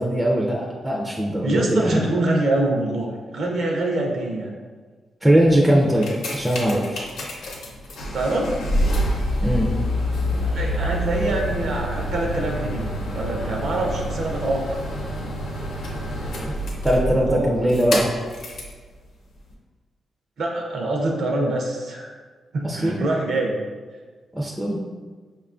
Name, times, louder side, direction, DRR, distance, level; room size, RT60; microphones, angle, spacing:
voice 1, 0.0-2.0 5.2-7.1 9.4-9.7 16.8-18.1 22.6-23.0 24.4-24.8, right 1 dB, 5° right, -3 dB, 0.3 m, -20 dB
voice 2, 1.4-4.5 8.1-8.6 10.4-12.9 13.1-14.7 17.3-17.5 20.4-22.1 22.5-23.6, right 2 dB, 60° right, 0 dB, 0.5 m, -24 dB
sound 1, 5.8-18.8 19.5-19.6, equal, 90° left, 0.7 m, -27 dB
5.2 x 2.2 x 2.4 m, 1.5 s
wide cardioid pair, 145°, 0 cm